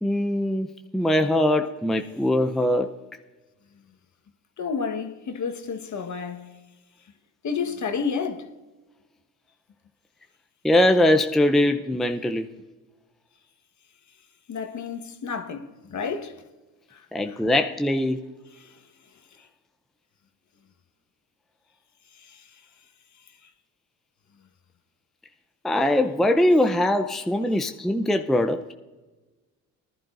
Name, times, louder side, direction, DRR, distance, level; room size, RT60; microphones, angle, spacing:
voice 1, 0.0-0.7 0.9-2.9 10.6-12.5 17.1-18.2 25.6-28.7, left 1 dB, ahead, 0.6 m, -22 dB
voice 2, 4.6-6.5 7.4-8.5 14.5-16.4 16.9-17.4 18.6-18.8 22.1-22.5, left 5 dB, 45° left, 1.4 m, -31 dB
19.5 x 11.5 x 2.6 m
supercardioid pair, 70°, 39 cm